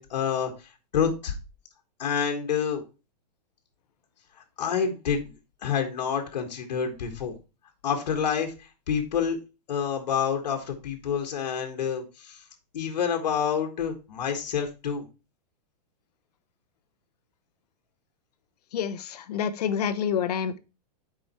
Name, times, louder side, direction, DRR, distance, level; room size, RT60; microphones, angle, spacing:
voice 1, 0.0-1.3 2.0-2.8 4.6-5.3 5.6-7.3 7.8-8.5 8.9-9.4 9.7-12.4 12.7-15.0, left 7 dB, 90° left, 4 dB, 1.6 m, -28 dB
voice 2, 18.7-20.6, left 7 dB, 70° left, 12 dB, 1.0 m, -28 dB
7.7 x 5.0 x 4.3 m, 0.30 s
supercardioid pair, 165°, 21 cm